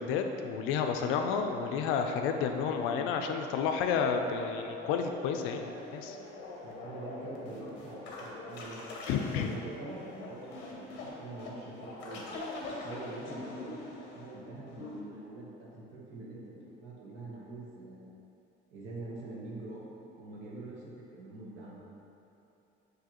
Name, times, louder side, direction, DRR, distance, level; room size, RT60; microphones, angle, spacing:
voice 1, 0.0-6.2 9.1-9.5, left 6 dB, 90° left, 5 dB, 0.4 m, -31 dB
sound 1, 4.2-15.0, left 2 dB, 60° left, 0.8 m, -44 dB
voice 2, 6.6-12.2 12.7-18.1 18.7-21.8, right 2 dB, 70° right, -6 dB, 1.0 m, -45 dB
6.0 x 2.7 x 2.9 m, 3.0 s
cardioid pair, 170°, 20 cm